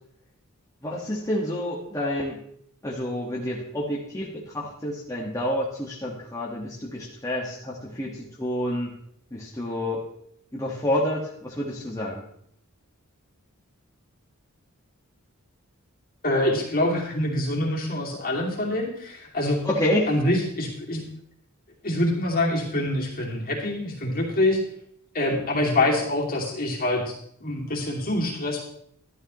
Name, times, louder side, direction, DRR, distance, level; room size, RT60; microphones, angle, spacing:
voice 1, 0.8-2.4 2.8-8.9 9.3-10.0 10.5-12.2 19.6-20.1, left 1 dB, 15° left, -5 dB, 1.7 m, -28 dB
voice 2, 16.2-19.6 20.1-21.0 21.8-24.6 25.1-28.6, left 1 dB, 45° left, -2 dB, 2.7 m, -25 dB
12.5 x 12.5 x 3.1 m, 0.68 s
head